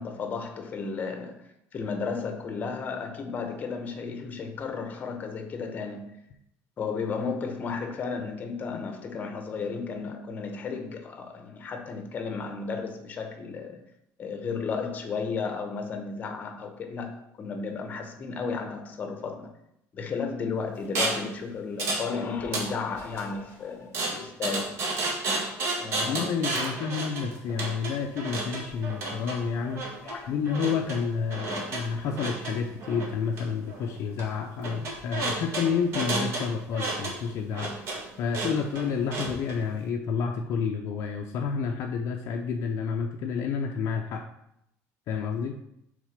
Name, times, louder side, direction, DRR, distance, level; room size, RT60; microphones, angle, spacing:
voice 1, 0.0-6.2 6.8-13.8 14.2-19.5 19.9-24.8 25.8-26.2 30.0-30.3, left 5 dB, 30° left, 0.8 m, -33 dB
sound 1, 20.9-21.3 21.8-22.1 22.4-23.2 23.9-39.6, right 2 dB, 50° right, 1.4 m, -32 dB
voice 2, 26.0-29.9 30.3-44.2 45.1-45.6, left 6 dB, 50° left, 0.5 m, -30 dB
6.4 x 3.6 x 5.1 m
cardioid pair, 170°, 6 cm